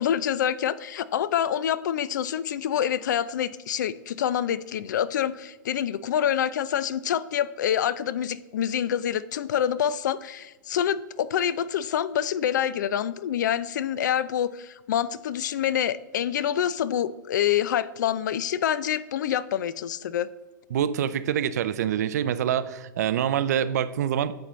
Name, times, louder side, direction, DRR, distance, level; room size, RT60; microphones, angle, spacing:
voice 1, 0.0-20.3, left 9 dB, 65° left, 17 dB, 0.4 m, -26 dB
voice 2, 20.7-24.4, right 9 dB, 55° right, 15 dB, 0.5 m, -25 dB
10.0 x 6.8 x 3.1 m, 1.2 s
hypercardioid pair, 165°, 11 cm